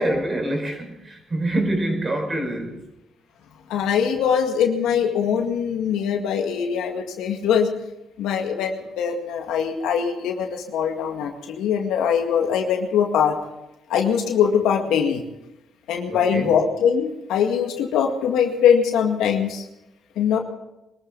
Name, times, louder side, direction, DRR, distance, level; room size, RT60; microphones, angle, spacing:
voice 1, 0.0-2.8 16.1-16.5, right 1 dB, 30° right, 5.4 m, -25 dB
voice 2, 3.7-7.7 8.2-13.4 13.9-15.2 15.9-19.6 20.2-20.4, left 7 dB, 90° left, 2.0 m, -22 dB
22.5 x 15.0 x 4.1 m
cardioid pair, 90°, 0 cm